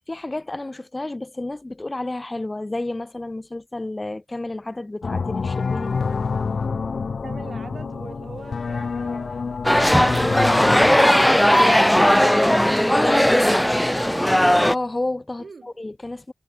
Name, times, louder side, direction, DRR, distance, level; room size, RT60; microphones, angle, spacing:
voice 1, 0.0-6.0 13.0-13.4 14.6-16.3, left 2 dB, 30° left, 1.4 m, -30 dB
sound 1, 5.0-10.9, left 5 dB, 85° left, 0.9 m, -27 dB
voice 2, 7.1-12.2 13.3-14.5 15.4-15.7, right 4 dB, 80° right, 5.0 m, -41 dB
sound 2, 9.6-14.7, equal, 5° left, 0.9 m, -17 dB
wide cardioid pair, 65°, 0 cm